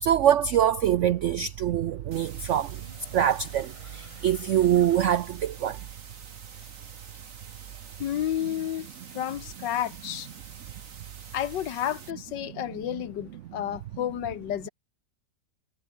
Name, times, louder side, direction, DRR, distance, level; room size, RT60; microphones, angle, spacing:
voice 1, 0.0-2.8 3.1-5.8, right 10 dB, 80° right, 0.6 m, -24 dB
sound 1, 1.2-6.3 7.3-7.4, left 1 dB, 15° left, 5.8 m, -55 dB
sound 2, 2.1-12.1, right 5 dB, 50° right, 2.3 m, -48 dB
voice 2, 8.0-10.3 11.3-14.7, left 11 dB, 90° left, 1.7 m, -31 dB
omnidirectional pair, 1.9 m